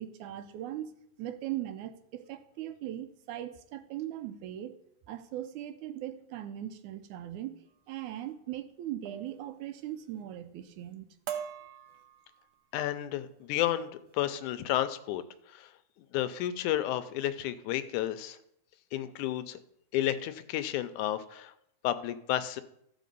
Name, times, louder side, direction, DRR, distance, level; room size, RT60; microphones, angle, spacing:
voice 1, 0.0-4.7 5.1-11.1, right 12 dB, 80° right, 10 dB, 2.0 m, -39 dB
sound 1, 8.1-8.3 9.1-9.4 9.7-10.2 10.6-10.9 11.3-12.6 13.2-13.4 13.8-14.1, right 9 dB, 65° right, 1.2 m, -43 dB
voice 2, 12.7-15.2 15.5-15.7 16.1-18.4 18.9-19.6 19.9-21.5 21.8-22.6, left 12 dB, 85° left, 12 dB, 2.0 m, -31 dB
13.5 x 5.0 x 5.3 m, 0.74 s
omnidirectional pair, 3.6 m